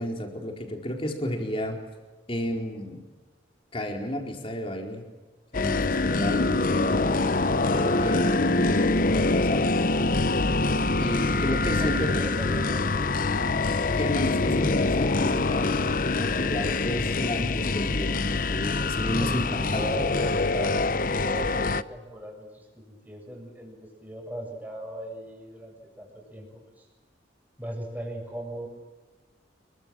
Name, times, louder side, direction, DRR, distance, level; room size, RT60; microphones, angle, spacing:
voice 1, 0.0-1.8 2.3-3.0 3.7-5.0 5.5-7.1 7.7-9.7 11.0-12.1 13.9-15.8 16.2-19.4 19.7-19.9, equal, 30° left, 2 dB, 4.4 m, -32 dB
sound 1, 5.5-21.8, left 3 dB, 45° left, 0.7 m, -25 dB
voice 2, 11.5-13.1 19.1-26.9 27.6-28.7, equal, 10° right, 1 dB, 7.5 m, -38 dB
29.0 x 23.5 x 7.7 m, 1.3 s
head